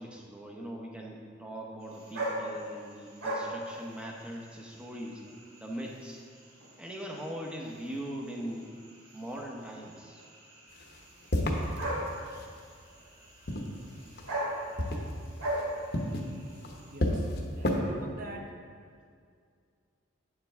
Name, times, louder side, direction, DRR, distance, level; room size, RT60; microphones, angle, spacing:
voice 1, 0.0-5.2 5.6-6.2 6.8-8.7 9.1-10.2, equal, 5° right, -1 dB, 0.8 m, -40 dB
sound 1, 1.8-17.0, right 1 dB, 85° right, 2.1 m, -40 dB
sound 2, 10.7-12.6 13.2-14.5 14.8-17.8, left 1 dB, 50° left, 1.0 m, -32 dB
voice 2, 16.7-17.3 17.6-18.5, right 1 dB, 40° right, 2 dB, 0.9 m, -43 dB
9.5 x 7.5 x 3.5 m, 2.2 s
head